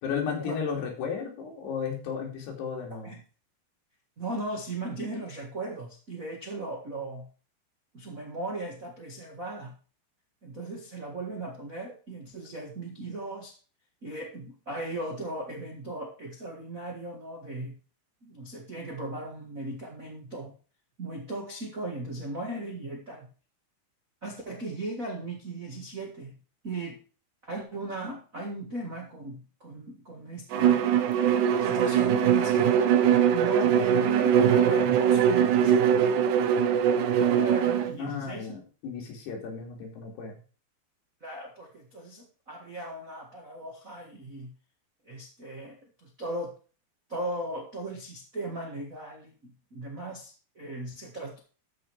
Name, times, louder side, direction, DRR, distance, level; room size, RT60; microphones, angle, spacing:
voice 1, 0.0-3.2 38.0-40.4, left 6 dB, 70° left, 0 dB, 4.7 m, -34 dB
voice 2, 4.2-7.3 7.9-9.7 10.4-13.5 14.0-17.8 18.2-20.5 21.0-23.3 24.2-26.4 26.6-27.0 27.4-30.8 31.6-32.8 33.3-36.5 37.1-38.6 41.2-44.5 45.0-46.6 47.1-51.4, right 2 dB, 70° right, -1 dB, 0.7 m, -37 dB
Bowed string instrument, 30.5-37.9, right 8 dB, 90° right, 1.7 m, -22 dB
13.0 x 5.3 x 4.7 m, 0.36 s
omnidirectional pair, 4.9 m